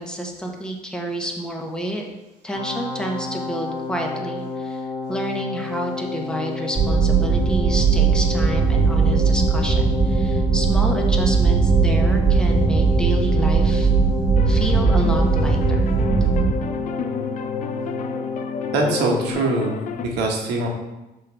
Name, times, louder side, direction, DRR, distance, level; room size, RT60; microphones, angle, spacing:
voice 1, 0.0-2.1 2.4-13.9 14.5-15.9, equal, 5° left, 1 dB, 0.9 m, -29 dB
sound 1, 2.5-19.3, left 3 dB, 85° left, 1.4 m, -30 dB
sound 2, 6.7-16.5, right 5 dB, 15° right, 1.8 m, -18 dB
sound 3, 14.3-20.1, left 7 dB, 50° left, 0.4 m, -31 dB
voice 2, 18.7-20.7, right 2 dB, 90° right, 0 dB, 1.2 m, -23 dB
5.6 x 3.8 x 4.4 m, 1.0 s
cardioid pair, 110°, 17 cm